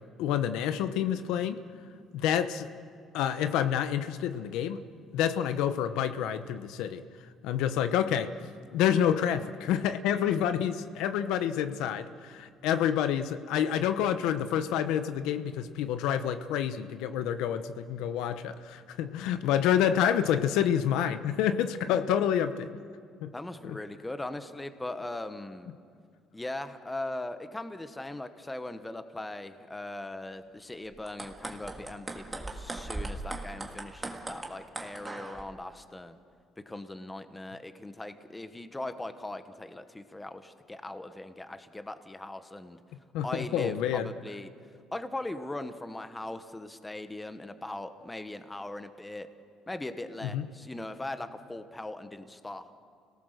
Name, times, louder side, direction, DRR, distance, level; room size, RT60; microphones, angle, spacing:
voice 1, 0.2-1.6 2.1-2.7 3.1-4.8 5.1-7.0 7.4-8.3 8.7-22.8 23.2-23.3 23.6-23.8 43.1-44.1 50.2-50.4, left 9 dB, 90° left, 10 dB, 1.0 m, -28 dB
voice 2, 23.3-25.7 26.3-36.2 36.7-42.8 43.2-44.5 44.9-49.3 49.7-52.7, left 2 dB, 10° left, 9 dB, 1.1 m, -39 dB
sound 1, 30.9-35.4, right 2 dB, 15° right, 1.9 m, -39 dB
29.5 x 18.5 x 6.7 m, 2.3 s
cardioid pair, 135°, 0 cm